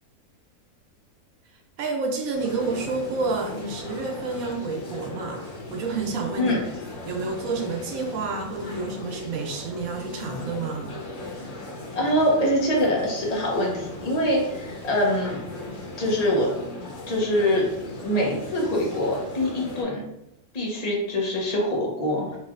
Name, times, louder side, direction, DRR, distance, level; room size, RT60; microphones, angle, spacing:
voice 1, 1.8-6.5 7.1-10.9, right 3 dB, 70° right, 2 dB, 1.0 m, -29 dB
sound 1, 2.3-19.8, left 2 dB, 55° left, 1.3 m, -38 dB
voice 2, 11.9-15.4 16.0-16.5 17.1-17.7 18.0-20.0 20.5-22.4, equal, 35° left, -2 dB, 0.8 m, -24 dB
4.2 x 3.3 x 2.5 m, 0.85 s
omnidirectional pair, 1.6 m